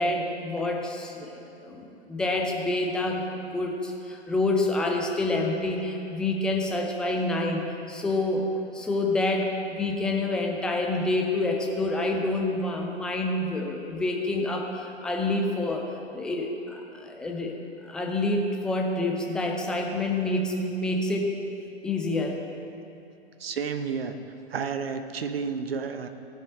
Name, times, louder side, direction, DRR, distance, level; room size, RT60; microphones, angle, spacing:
voice 1, 0.0-8.5 8.7-15.8 16.1-17.5 17.8-21.3 21.8-22.4, left 2 dB, ahead, 1 dB, 0.4 m, -27 dB
voice 2, 23.4-24.2 24.5-26.1, right 6 dB, 60° right, 9 dB, 0.8 m, -31 dB
15.5 x 7.5 x 4.4 m, 2.8 s
figure-of-eight pair, 115°, 33 cm